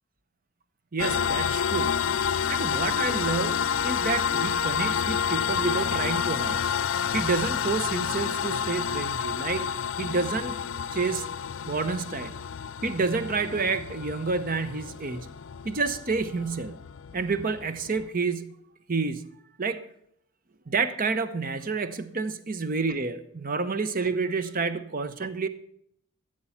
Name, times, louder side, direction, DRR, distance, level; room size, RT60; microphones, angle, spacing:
voice 1, 0.9-1.9 2.5-6.6 7.1-9.6 10.0-10.6 10.9-11.3 11.7-12.3 12.8-15.3 15.6-16.8 17.1-18.5 18.9-19.3 19.6-19.8 20.7-25.5, right 4 dB, 40° right, 12 dB, 0.8 m, -29 dB
sound 1, 1.0-18.1, left 7 dB, 60° left, 0.4 m, -29 dB
14.0 x 7.7 x 5.8 m, 0.70 s
head